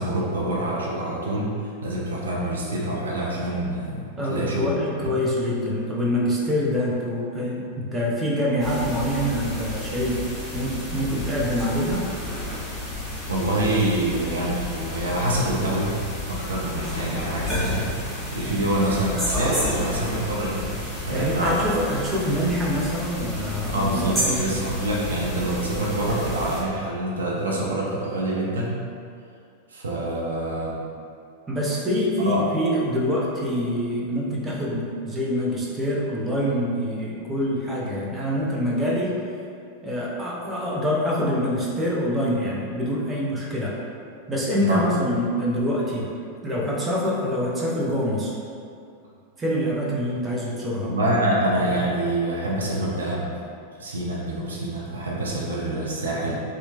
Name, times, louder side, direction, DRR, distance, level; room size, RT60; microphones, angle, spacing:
voice 1, 0.0-1.5 1.8-4.7 13.3-16.0 16.3-20.8 21.0-21.6 23.7-28.8 29.7-30.8 32.3-32.5 44.6-44.8 50.8-53.3 53.8-56.4, right 1 dB, 70° right, -4 dB, 0.4 m, -26 dB
voice 2, 4.2-10.2 10.5-12.0 21.1-24.4 31.5-39.2 39.8-43.8 44.3-46.1 46.4-48.3 49.4-50.9, equal, 15° right, -5 dB, 0.5 m, -25 dB
sound 1, 8.6-26.6, left 1 dB, 5° left, 1.0 m, -31 dB
2.8 x 2.0 x 2.8 m, 2.4 s
figure-of-eight pair, 90°, 0 cm